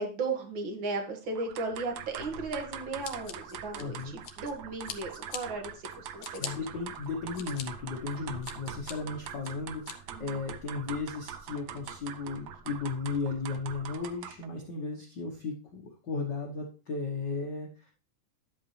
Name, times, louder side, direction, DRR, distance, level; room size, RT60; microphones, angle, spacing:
voice 1, 0.0-6.6 10.1-10.4, right 3 dB, 40° right, 4 dB, 2.1 m, -36 dB
sound 1, 1.4-14.5, right 8 dB, 90° right, 1.4 m, -43 dB
Scissors, 3.0-4.5 4.8-5.4 5.9-6.5 7.0-7.6 8.1-8.9 9.4-9.9, left 8 dB, 60° left, 2.0 m, -41 dB
voice 2, 3.7-4.1 6.4-17.9, left 4 dB, 85° left, 0 dB, 0.9 m, -35 dB
11.0 x 7.8 x 3.2 m, 0.36 s
omnidirectional pair, 3.9 m